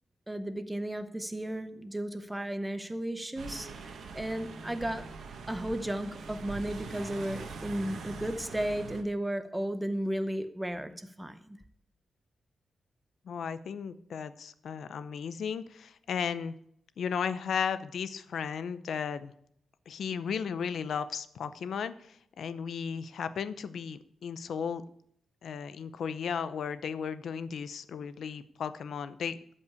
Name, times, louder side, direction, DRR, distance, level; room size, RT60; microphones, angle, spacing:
voice 1, 0.3-3.7 4.1-5.1 5.5-11.6, right 1 dB, 5° right, 0.7 m, -34 dB
sound 1, 3.4-9.0, right 4 dB, 60° right, 1.4 m, -43 dB
voice 2, 13.3-16.5 17.0-19.3 19.9-24.8 25.4-29.6, left 7 dB, 60° left, 0.7 m, -35 dB
13.0 x 5.5 x 7.0 m
wide cardioid pair, 175°, 0 cm